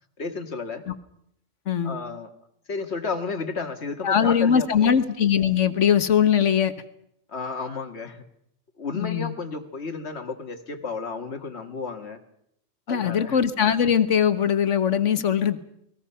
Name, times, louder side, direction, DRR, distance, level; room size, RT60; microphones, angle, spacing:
voice 1, 0.2-0.8 1.8-2.3 2.7-4.9 7.3-8.2 8.8-12.2 12.9-13.4, left 4 dB, 60° left, 6 dB, 2.1 m, -32 dB
voice 2, 1.7-2.0 4.0-6.7 8.9-9.3 12.9-15.6, left 8 dB, 75° left, 11 dB, 1.6 m, -21 dB
29.0 x 20.5 x 5.7 m, 0.75 s
omnidirectional pair, 1.3 m